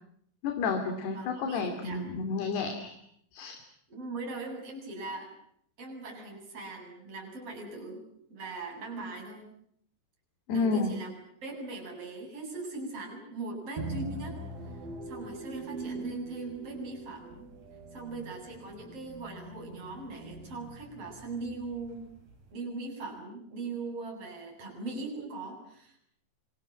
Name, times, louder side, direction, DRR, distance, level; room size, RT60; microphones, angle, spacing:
voice 1, 0.4-3.0 3.3-3.6 10.5-10.9, left 4 dB, 60° left, 5 dB, 4.6 m, -30 dB
voice 2, 1.0-2.2 3.9-5.3 5.8-8.0 8.3-9.5 10.5-11.1 11.4-14.4 15.1-17.4 17.9-22.0 22.5-26.0, right 3 dB, 30° right, 1 dB, 8.9 m, -40 dB
sound 1, 13.8-22.5, right 3 dB, 45° right, 6.2 m, -42 dB
29.0 x 27.0 x 7.6 m, 0.69 s
omnidirectional pair, 5.7 m